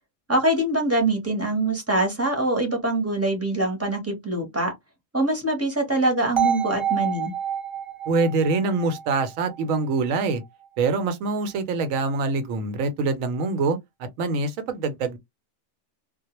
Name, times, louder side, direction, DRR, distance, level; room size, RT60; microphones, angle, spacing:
voice 1, 0.3-4.7 5.1-7.3, right 1 dB, 15° right, 0.7 m, -24 dB
sound 1, 6.4-10.3, right 8 dB, 45° right, 0.4 m, -28 dB
voice 2, 8.1-10.4 10.8-15.2, right 3 dB, 80° right, 1.0 m, -25 dB
2.2 x 2.1 x 2.9 m
omnidirectional pair, 1.4 m